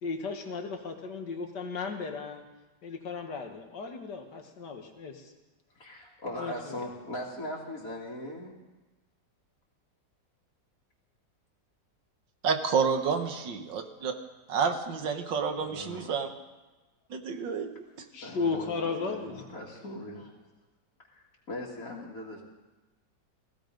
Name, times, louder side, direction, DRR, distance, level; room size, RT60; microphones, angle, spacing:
voice 1, 0.0-2.4 2.8-5.3 6.4-6.8 18.1-19.4, left 4 dB, 70° left, 4 dB, 2.1 m, -35 dB
voice 2, 5.7-8.6 13.3-13.4 15.5-16.1 17.6-17.7 18.2-18.7 19.0-20.3 21.1-22.4, left 1 dB, 50° left, -5 dB, 2.5 m, -40 dB
voice 3, 12.4-14.1 14.5-16.3 17.1-17.7, right 6 dB, 90° right, 6 dB, 2.0 m, -29 dB
17.0 x 16.0 x 5.2 m, 1.1 s
omnidirectional pair, 1.9 m